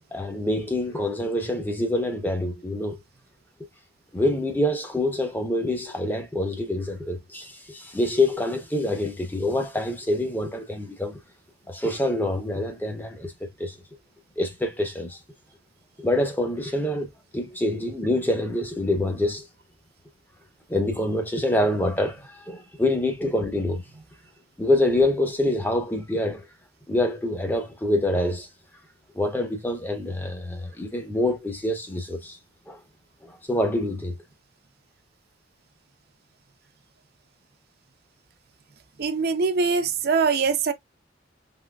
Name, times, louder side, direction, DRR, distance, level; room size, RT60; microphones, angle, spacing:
voice 1, 0.1-3.0 4.1-11.2 11.7-13.7 14.4-15.2 16.0-19.4 20.7-23.8 24.6-26.4 26.9-28.5 29.1-32.4 32.7-32.8 33.2-34.2, left 1 dB, 10° left, 0.7 m, -26 dB
voice 2, 39.0-40.7, right 5 dB, 55° right, 0.6 m, -23 dB
3.7 x 2.9 x 2.2 m
head